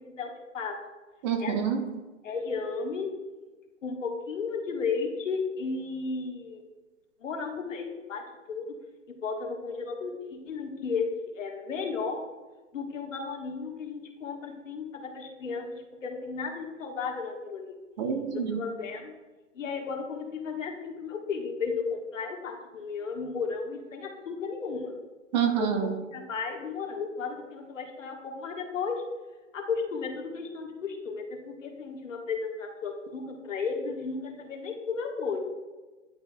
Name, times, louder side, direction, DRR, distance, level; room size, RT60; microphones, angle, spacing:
voice 1, 0.2-0.7 1.4-1.6 2.2-3.1 3.8-6.6 7.2-8.7 9.1-11.1 11.3-12.2 12.7-17.7 18.5-19.1 19.5-24.9 25.6-29.0 29.5-35.4, left 5 dB, 75° left, 1 dB, 1.5 m, -34 dB
voice 2, 1.2-1.8 18.0-18.6 25.3-25.9, right 8 dB, 35° right, 5 dB, 0.8 m, -27 dB
10.5 x 4.7 x 2.3 m, 1.2 s
hypercardioid pair, 135°, 38 cm